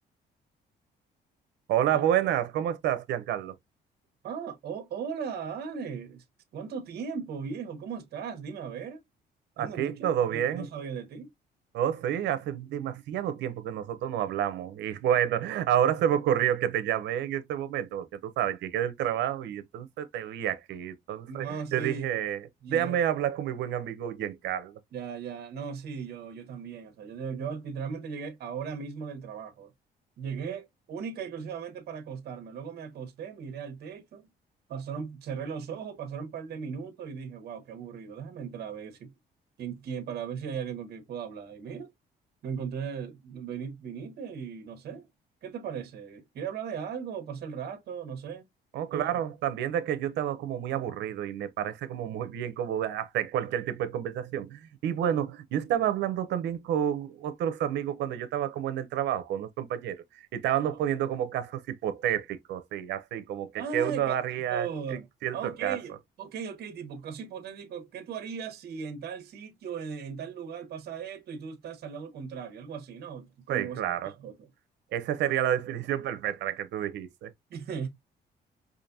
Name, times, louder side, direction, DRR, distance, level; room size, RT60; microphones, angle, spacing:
voice 1, 1.7-3.6 9.6-10.7 11.7-24.8 48.7-64.7 65.2-65.8 73.5-74.1 74.9-77.3, right 10 dB, 90° right, 0.7 m, -29 dB
voice 2, 4.2-6.2 6.5-9.0 9.6-11.3 21.3-22.1 22.6-23.0 24.9-29.7 30.2-34.3 34.7-39.1 39.6-41.9 42.4-45.1 45.4-48.4 48.9-49.2 60.6-60.7 63.6-64.2 64.5-65.1 65.3-74.5 77.5-77.9, right 6 dB, 65° right, 1.1 m, -37 dB
5.0 x 2.6 x 2.6 m
cardioid pair, 130°, 18 cm